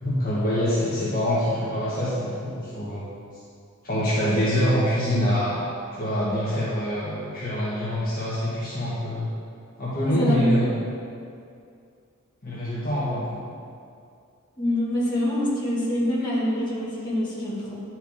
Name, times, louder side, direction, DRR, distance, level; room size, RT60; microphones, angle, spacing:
voice 1, 0.0-3.1 3.8-5.6 5.9-9.3 9.8-10.8 12.4-13.4, equal, 45° left, -9 dB, 1.4 m, -25 dB
voice 2, 10.0-10.5 14.6-17.8, left 1 dB, 20° left, -8 dB, 1.8 m, -25 dB
10.0 x 4.5 x 3.6 m, 2.4 s
head